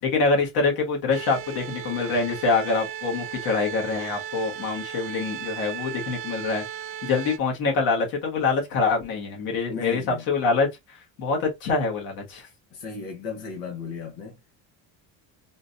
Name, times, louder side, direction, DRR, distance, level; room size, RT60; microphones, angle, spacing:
voice 1, 0.0-6.6 7.0-12.5, left 4 dB, 65° left, 1.6 m, -25 dB
sound 1, 1.1-7.4, right 10 dB, 35° right, 0.4 m, -36 dB
voice 2, 9.7-10.3 12.7-14.5, left 5 dB, 90° left, 1.2 m, -35 dB
3.8 x 2.7 x 2.5 m
cardioid pair, 170°, 38 cm